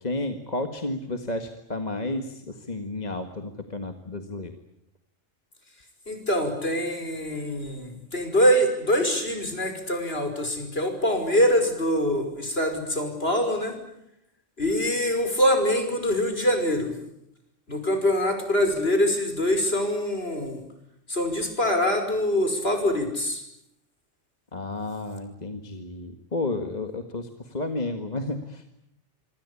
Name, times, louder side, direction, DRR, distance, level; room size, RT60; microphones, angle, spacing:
voice 1, 0.0-4.5 24.5-28.7, left 2 dB, 35° left, 6 dB, 1.9 m, -32 dB
voice 2, 6.1-13.8 14.6-16.9 17.7-20.6 21.1-23.4, equal, 55° left, 6 dB, 5.8 m, -24 dB
26.5 x 25.5 x 8.5 m, 0.80 s
omnidirectional pair, 1.3 m